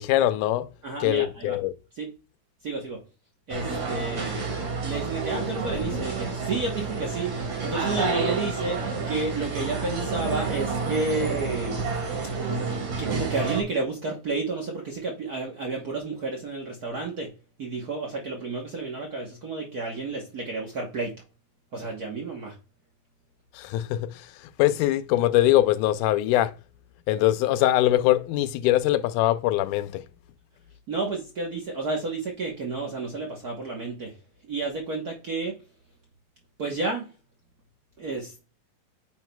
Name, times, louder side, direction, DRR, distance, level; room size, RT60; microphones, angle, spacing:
voice 1, 0.0-0.7 1.0-1.7 23.5-24.3 24.6-26.5 27.1-30.0, left 14 dB, 85° left, 2.1 m, -22 dB
voice 2, 0.8-1.6 1.9-2.1 2.6-3.0 3.5-4.3 4.8-7.3 7.6-11.8 13.0-17.3 17.6-21.2 21.7-22.6 30.9-34.2 34.5-35.6 36.6-37.1 38.0-38.5, right 3 dB, 90° right, 0.8 m, -31 dB
sound 1, 3.5-13.6, right 4 dB, 60° right, 3.5 m, -29 dB
9.1 x 6.1 x 2.3 m
omnidirectional pair, 3.5 m